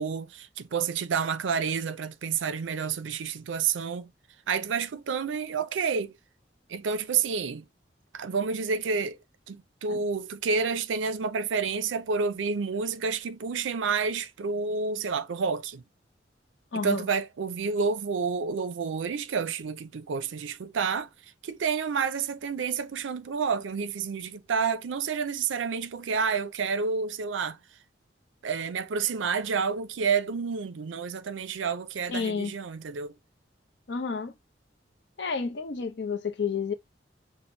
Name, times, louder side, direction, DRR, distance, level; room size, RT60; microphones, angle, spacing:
voice 1, 0.0-4.1 4.5-6.1 6.7-7.6 8.1-9.2 9.5-15.8 16.8-21.1 21.4-27.6 28.4-33.2, right 5 dB, 85° right, 0.5 m, -29 dB
voice 2, 16.7-17.0 32.1-32.5 33.9-34.3 35.2-36.7, left 5 dB, 65° left, 0.6 m, -30 dB
6.1 x 2.1 x 2.6 m
head